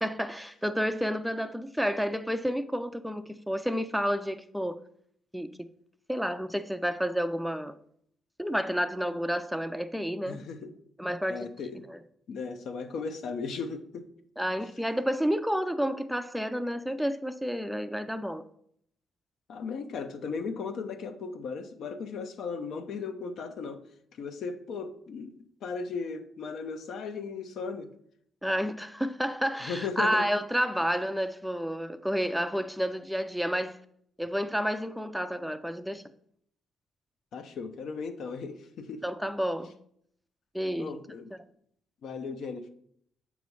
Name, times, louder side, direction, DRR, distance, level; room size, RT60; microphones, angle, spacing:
voice 1, 0.0-4.8 5.3-5.5 6.1-7.8 8.4-10.4 11.0-11.5 11.9-12.0 14.4-18.4 28.4-33.8 34.2-36.0 39.0-39.7 40.5-41.0, equal, ahead, 0.4 m, -30 dB
voice 2, 10.3-10.7 11.3-11.8 12.3-14.1 19.5-27.9 29.6-30.2 37.3-39.0 40.8-41.3 42.0-42.7, left 5 dB, 70° left, 0.7 m, -36 dB
7.0 x 3.1 x 5.4 m
cardioid pair, 90°, 0 cm